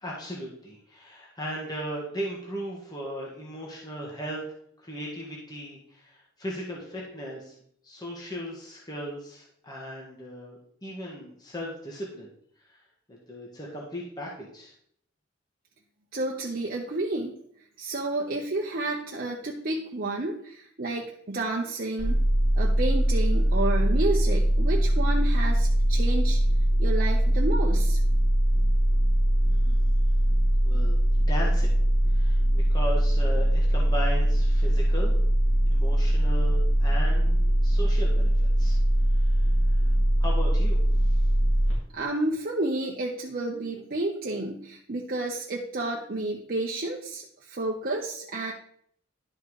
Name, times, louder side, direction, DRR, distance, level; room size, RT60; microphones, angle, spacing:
voice 1, 0.0-4.4 4.8-7.5 7.8-12.3 13.1-14.7 29.5-29.8 30.6-31.8 32.1-35.1 35.7-38.8 39.2-39.4 40.2-41.2, equal, 20° left, -3 dB, 1.7 m, -37 dB
voice 2, 16.1-17.4 17.8-22.2 22.6-26.4 26.8-28.0 41.9-48.5, right 2 dB, 50° right, -1 dB, 0.9 m, -30 dB
sound 1, 22.0-41.7, right 1 dB, 70° left, 4.0 m, -22 dB
11.5 x 4.6 x 4.8 m, 0.65 s
head